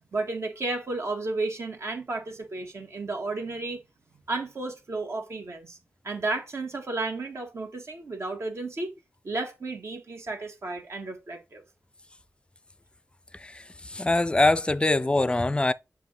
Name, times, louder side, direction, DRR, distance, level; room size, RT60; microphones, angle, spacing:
voice 1, 0.1-3.8 4.3-5.8 6.0-8.9 9.2-11.6, right 3 dB, 65° right, 1.6 m, -33 dB
voice 2, 13.4-15.7, left 2 dB, 20° left, 0.4 m, -24 dB
7.3 x 2.6 x 5.4 m
wide cardioid pair, 75°, 5 cm